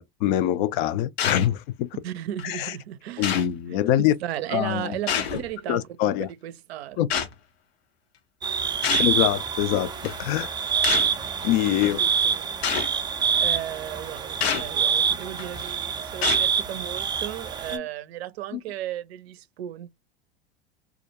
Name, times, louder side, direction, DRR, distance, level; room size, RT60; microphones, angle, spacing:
voice 1, 0.0-1.9 2.4-2.7 3.2-4.1 4.5-5.0 5.7-6.3 7.0-7.1 9.0-10.5 11.4-12.0 17.7-17.8 18.5-18.6, left 12 dB, 55° left, 0.4 m, -24 dB
sound 1, 1.2-1.5 2.4-2.5 3.2-3.5 5.1-5.5 7.1-7.3 8.8-9.2 10.0-10.2 10.8-11.2 11.8-11.9 12.6-12.9 14.4-14.7 15.4-15.6 16.2-16.5, left 8 dB, 80° left, 0.7 m, -27 dB
voice 2, 2.0-3.4 4.0-7.0 11.8-12.5 13.4-19.9, right 12 dB, 80° right, 0.5 m, -35 dB
sound 2, 8.4-17.8, right 7 dB, 15° right, 0.3 m, -26 dB
2.4 x 2.1 x 2.7 m
hypercardioid pair, 95°, 31 cm